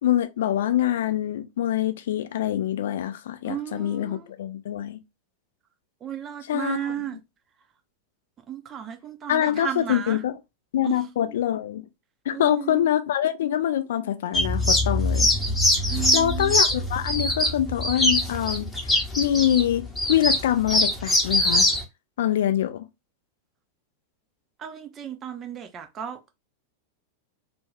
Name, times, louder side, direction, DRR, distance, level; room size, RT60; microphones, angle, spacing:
voice 1, 0.0-5.0 6.5-6.9 9.3-10.4 10.7-11.8 12.3-15.3 15.9-21.7 22.2-22.9, left 11 dB, 60° left, 0.3 m, -25 dB
voice 2, 3.4-4.3 6.0-7.2 8.5-10.2 10.8-11.3 12.3-12.9 15.9-16.6 24.6-26.3, right 10 dB, 25° right, 0.5 m, -34 dB
sound 1, 14.3-21.8, left 1 dB, 10° left, 0.8 m, -23 dB
2.5 x 2.2 x 3.0 m
figure-of-eight pair, 90°, 0 cm